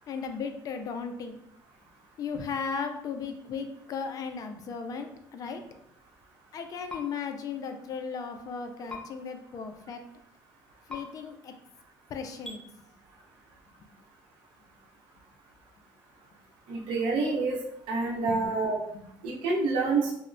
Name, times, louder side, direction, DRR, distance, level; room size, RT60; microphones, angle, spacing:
voice 1, 0.1-1.4 2.2-5.6 6.5-10.0 10.9-11.5 12.1-12.9 18.3-18.4 18.9-19.1, left 5 dB, 45° left, 6 dB, 0.3 m, -36 dB
sound 1, 6.9-7.0 8.9-9.0 10.9-11.0 12.4-12.6, left 3 dB, 10° left, 0.6 m, -38 dB
voice 2, 16.7-17.6 17.9-18.8 19.2-20.1, right 3 dB, 80° right, -2 dB, 0.8 m, -27 dB
3.0 x 2.0 x 2.5 m, 0.75 s
cardioid pair, 125°, 9 cm